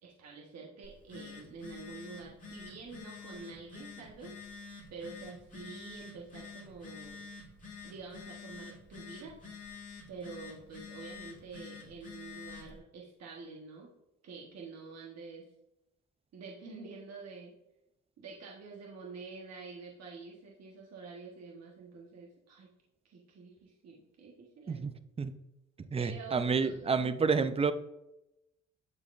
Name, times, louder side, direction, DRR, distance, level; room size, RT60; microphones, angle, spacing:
voice 1, 0.0-4.3 4.9-7.2 7.8-9.4 10.1-13.9 14.2-15.5 16.3-17.5 18.2-22.7 23.0-24.8 26.0-27.1, right 4 dB, 60° right, -2 dB, 1.2 m, -47 dB
Telephone, 0.8-12.8, left 5 dB, 25° left, 2.1 m, -48 dB
voice 2, 24.7-25.3 25.9-27.7, right 5 dB, 20° right, 11 dB, 0.4 m, -29 dB
10.5 x 4.1 x 2.5 m, 0.89 s
cardioid pair, 90°, 30 cm